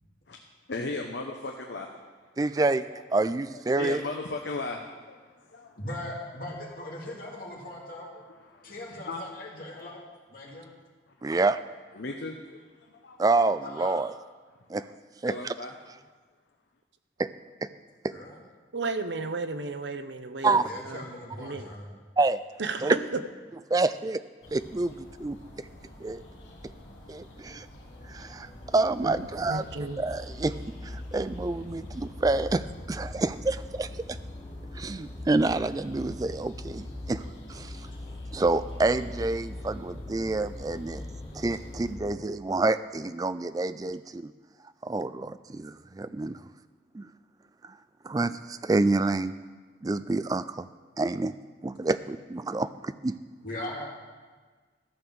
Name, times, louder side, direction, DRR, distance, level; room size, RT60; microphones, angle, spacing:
voice 1, 0.7-2.0 2.9-3.0 3.5-5.8 8.1-8.8 9.1-9.2 10.4-10.6 11.1-11.4 11.9-13.2 15.2-15.7, left 3 dB, 70° left, 2 dB, 0.8 m, -37 dB
voice 2, 2.4-2.8 3.1-4.0 11.2-11.6 13.2-14.1 14.7-14.8 15.2-15.3 17.2-17.3 17.6-17.7 20.4-20.7 22.2-22.4 22.8-23.0 23.7-24.2 24.5-25.4 26.0-26.2 27.1-27.7 28.1-29.6 30.0-30.6 30.8-32.6 32.9-33.9 34.7-37.2 37.5-37.7 38.3-41.0 41.4-44.3 44.8-46.4 46.9-47.1 48.0-49.3 49.8-50.7 51.0-51.3 51.6-53.2, right 3 dB, 20° right, 13 dB, 0.3 m, -27 dB
voice 3, 5.8-8.1 8.6-10.0 10.3-10.7 13.6-14.1 18.1-18.4 20.6-21.9 53.4-53.9, left 1 dB, 50° left, -4 dB, 2.7 m, -39 dB
voice 4, 18.7-20.6 20.8-21.0 21.4-21.6 22.6-23.2 29.0-30.0, right 3 dB, 75° right, 10 dB, 0.7 m, -33 dB
sound 1, 24.4-42.0, left 1 dB, 90° left, 2.0 m, -48 dB
sound 2, 27.8-42.3, left 1 dB, 20° left, 0.8 m, -42 dB
14.0 x 6.9 x 6.2 m, 1.4 s
head